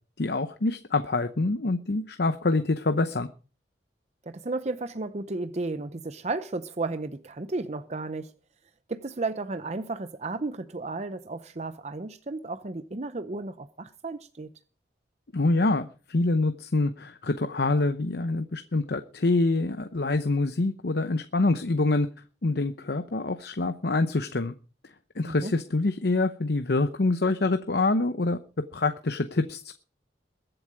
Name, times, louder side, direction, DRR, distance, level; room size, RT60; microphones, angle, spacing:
voice 1, 0.2-3.3 15.3-22.1 22.4-24.5 25.2-28.4 28.7-29.7, left 2 dB, 65° left, 0.8 m, -26 dB
voice 2, 4.3-8.3 8.9-14.5 25.3-25.5, right 3 dB, 40° right, 0.7 m, -33 dB
22.0 x 7.9 x 4.9 m
head